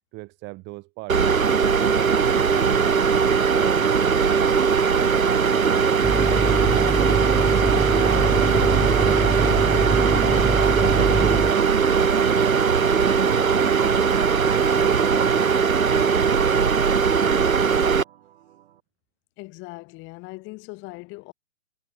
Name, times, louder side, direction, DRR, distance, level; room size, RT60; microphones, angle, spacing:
voice 1, 0.1-3.1 3.6-4.1 4.6-5.4 5.8-9.0 9.4-10.1 10.6-14.0 14.4-15.6 15.9-17.8, right 24 dB, 25° right, 2.6 m, -39 dB
sound 1, 1.1-18.0, right 6 dB, 85° right, 1.0 m, -20 dB
sound 2, 6.0-11.5, right 2 dB, ahead, 0.5 m, -24 dB
sound 3, 7.7-18.7, right 12 dB, 50° right, 3.9 m, -36 dB
voice 2, 19.4-21.3, left 24 dB, 30° left, 5.9 m, -39 dB
figure-of-eight pair, 125°, 40 cm